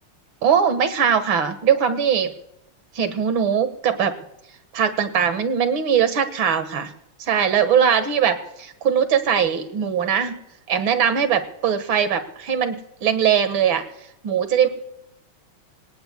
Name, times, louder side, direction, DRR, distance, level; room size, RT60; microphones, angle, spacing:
voice 1, 0.4-2.3 3.0-4.2 4.7-6.9 7.2-10.4 10.7-13.8 14.2-14.7, right 8 dB, 65° right, 10 dB, 2.3 m, -20 dB
27.5 x 18.0 x 2.3 m, 0.82 s
omnidirectional pair, 2.4 m